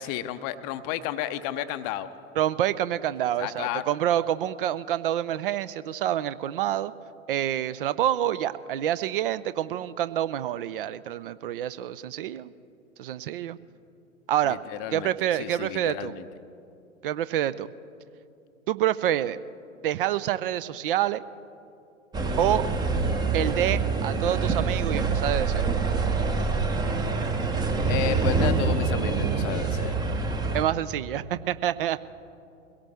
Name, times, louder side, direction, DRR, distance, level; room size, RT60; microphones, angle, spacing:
voice 1, 0.0-2.1 3.4-3.8 14.4-16.3 27.8-30.0, left 12 dB, 30° left, 11 dB, 0.6 m, -32 dB
voice 2, 2.4-6.9 7.3-12.5 13.0-13.6 14.3-14.6 14.9-16.1 17.0-17.7 18.7-19.4 19.8-21.2 22.4-22.7 23.3-25.7 30.5-32.0, right 11 dB, 45° right, 16 dB, 0.5 m, -27 dB
sound 1, 22.1-30.6, right 4 dB, 10° right, 0.7 m, -26 dB
22.5 x 17.5 x 3.5 m, 2.6 s
figure-of-eight pair, 100°, 38 cm